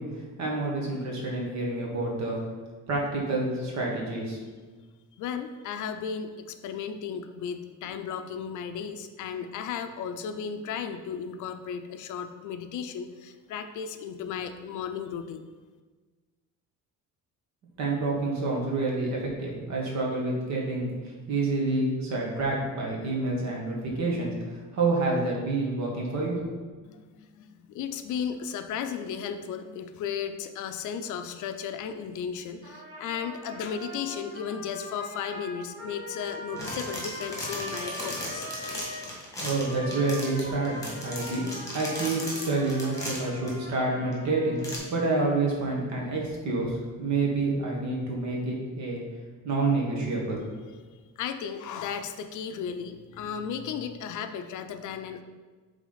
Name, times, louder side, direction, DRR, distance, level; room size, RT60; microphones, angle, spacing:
voice 1, 0.0-2.4 2.9-4.4 17.8-26.4 39.4-44.6 44.9-49.0 49.4-50.5, right 2 dB, 55° right, -2 dB, 1.6 m, -28 dB
voice 2, 5.2-15.4 26.9-38.5 51.2-55.2, left 7 dB, 65° left, 8 dB, 0.5 m, -35 dB
Trumpet, 32.6-39.1 39.6-44.9, left 1 dB, 35° right, 1.4 m, -42 dB
sound 1, 36.3-43.5 44.1-44.2 44.6-44.8, left 1 dB, 10° left, 1.7 m, -37 dB
8.1 x 3.6 x 4.0 m, 1.4 s
cardioid pair, 165°, 33 cm